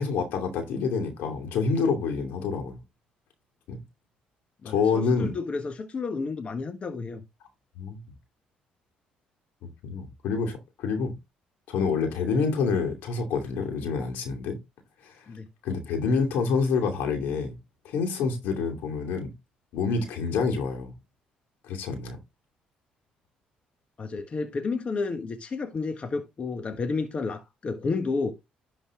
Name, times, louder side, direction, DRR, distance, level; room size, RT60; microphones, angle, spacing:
voice 1, 0.0-2.8 3.7-3.8 4.6-5.3 7.7-8.0 9.8-11.1 11.7-14.6 15.1-15.2 15.6-17.6 17.8-19.3 19.7-20.9 21.7-22.2, left 5 dB, 80° left, 2.6 m, -27 dB
voice 2, 4.6-7.2 15.3-15.5 24.0-28.3, left 4 dB, 40° left, 1.3 m, -31 dB
11.0 x 4.1 x 3.7 m
cardioid pair, 85°, 3 cm